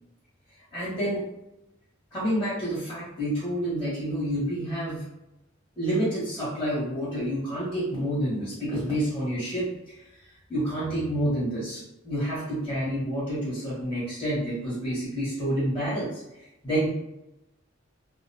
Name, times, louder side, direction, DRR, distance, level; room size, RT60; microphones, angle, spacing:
voice 1, 0.7-1.2 2.1-5.0 5.8-16.9, right 1 dB, 10° left, -9 dB, 1.0 m, -29 dB
2.4 x 2.2 x 2.6 m, 0.90 s
head